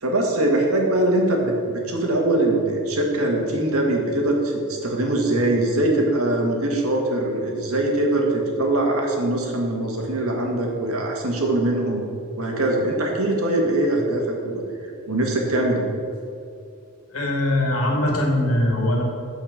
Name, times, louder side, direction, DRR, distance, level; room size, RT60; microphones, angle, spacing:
voice 1, 0.0-12.0 12.4-14.6 15.1-15.9, right 1 dB, 70° right, 0 dB, 1.7 m, -22 dB
voice 2, 17.1-19.0, left 1 dB, 70° left, -1 dB, 2.1 m, -21 dB
9.1 x 4.7 x 6.6 m, 2.5 s
head